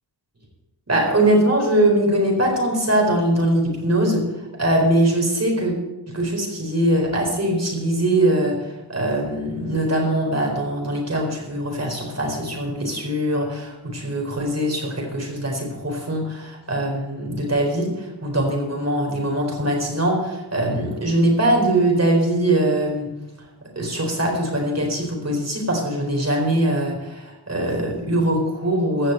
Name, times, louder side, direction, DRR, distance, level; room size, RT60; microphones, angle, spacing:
voice 1, 0.9-4.2 4.6-5.7 6.1-23.1 23.8-29.1, right 1 dB, 40° right, 1 dB, 4.4 m, -22 dB
15.5 x 6.5 x 7.9 m, 1.0 s
wide cardioid pair, 85°, 40 cm